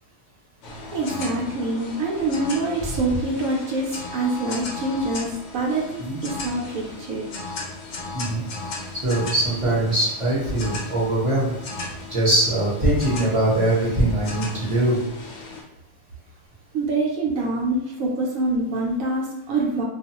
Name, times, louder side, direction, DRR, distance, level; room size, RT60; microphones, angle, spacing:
sound 1, 0.6-15.6, left 3 dB, 65° left, 0.7 m, -36 dB
voice 1, 0.9-7.3 16.7-19.8, right 2 dB, 70° right, -2 dB, 1.0 m, -25 dB
voice 2, 9.0-11.5 12.1-15.0, right 1 dB, 25° right, -8 dB, 0.8 m, -21 dB
2.5 x 2.3 x 2.9 m, 0.89 s
omnidirectional pair, 1.6 m